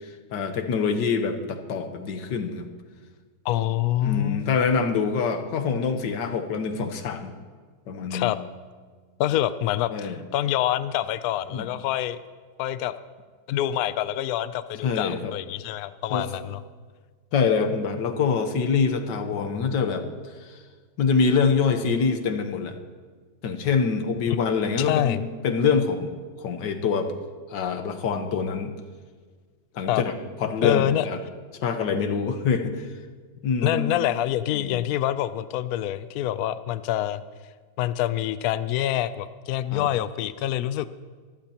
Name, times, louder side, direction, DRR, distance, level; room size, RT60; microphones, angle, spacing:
voice 1, 0.3-2.7 4.0-7.3 7.9-8.3 9.9-10.2 11.5-11.7 14.8-15.3 16.1-16.3 17.3-20.0 20.5-20.6 21.0-22.7 23.4-27.1 27.5-28.7 29.7-31.2 31.6-32.9 33.4-34.0 34.5-34.8 39.7-39.9, left 5 dB, 90° left, 7 dB, 1.7 m, -25 dB
voice 2, 3.4-4.5 8.1-8.4 9.2-12.2 12.6-12.9 13.5-16.6 24.3-24.4 24.8-25.3 29.9-30.0 30.6-31.1 33.6-37.2 37.8-40.9, left 12 dB, 70° left, 13 dB, 1.0 m, -26 dB
24.0 x 14.5 x 2.9 m, 1.5 s
omnidirectional pair, 1.8 m